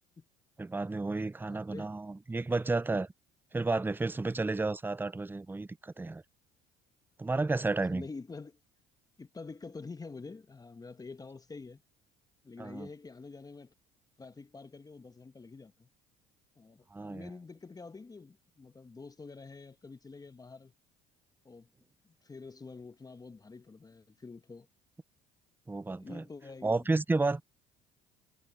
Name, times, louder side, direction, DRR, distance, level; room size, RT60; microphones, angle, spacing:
voice 1, 0.6-3.1 3.5-6.2 7.2-8.1 12.6-12.9 16.9-17.3 25.7-26.2 26.6-27.4, right 3 dB, 10° right, 0.7 m, -32 dB
voice 2, 1.5-1.9 7.9-8.6 9.2-11.8 12.4-13.7 14.2-15.9 16.6-20.7 21.4-21.7 22.2-24.7 25.9-26.9, left 4 dB, 20° left, 1.2 m, -47 dB
hypercardioid pair, 70°, 18 cm